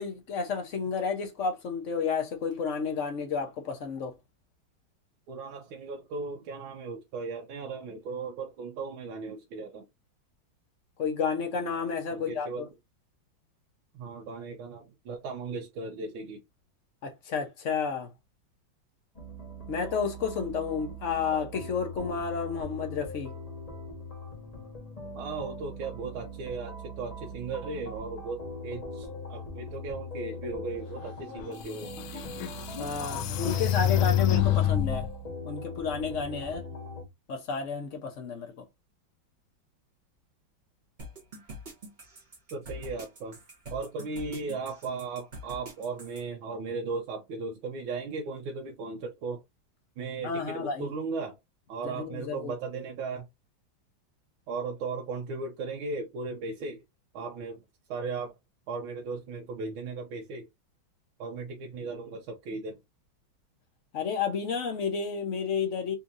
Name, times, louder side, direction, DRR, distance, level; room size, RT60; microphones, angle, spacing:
voice 1, 0.0-4.1 11.0-12.6 17.0-18.1 19.7-23.3 32.8-35.1 35.4-36.6 37.3-38.5 50.2-50.9 51.8-52.5 63.9-66.0, left 5 dB, 55° left, 0.9 m, -31 dB
voice 2, 5.3-9.9 12.1-12.7 13.9-16.4 25.1-31.9 42.5-43.4 43.7-49.4 50.0-51.4 51.7-53.3 54.5-56.8 57.1-57.6 57.9-58.4 58.7-60.5 61.2-62.8, right 4 dB, 85° right, 1.5 m, -36 dB
sound 1, 19.1-37.0, equal, 25° left, 1.0 m, -41 dB
sound 2, 31.3-31.4 32.0-35.1, left 11 dB, 85° left, 1.4 m, -26 dB
sound 3, 41.0-46.2, equal, 35° right, 0.8 m, -44 dB
4.4 x 2.7 x 2.5 m
omnidirectional pair, 2.2 m